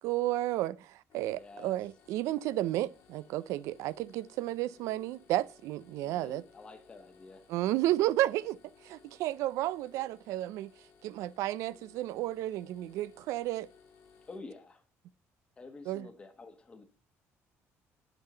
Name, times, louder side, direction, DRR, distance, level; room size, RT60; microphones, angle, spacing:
voice 1, 0.0-6.4 7.5-8.6 8.8-10.7 11.0-13.7 15.9-16.1, right 15 dB, 75° right, 0.4 m, -32 dB
sound 1, 1.1-14.4, left 5 dB, 60° left, 1.4 m, -61 dB
voice 2, 1.3-1.7 6.0-7.4 14.3-14.8 15.6-16.8, left 3 dB, 20° left, 1.1 m, -49 dB
8.9 x 3.6 x 6.6 m
cardioid pair, 155°, 5 cm